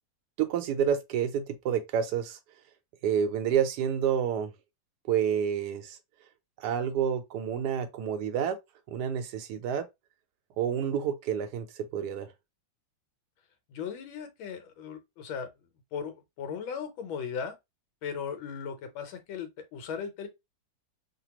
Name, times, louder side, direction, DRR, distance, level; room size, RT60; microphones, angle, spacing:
voice 1, 0.4-2.4 3.0-4.5 5.1-6.0 6.6-8.6 8.9-9.9 10.6-12.3, right 8 dB, 70° right, 1.0 m, -29 dB
voice 2, 13.7-15.5 15.9-17.5 18.0-20.3, left 7 dB, 85° left, 1.6 m, -37 dB
3.3 x 2.2 x 2.8 m
omnidirectional pair, 2.2 m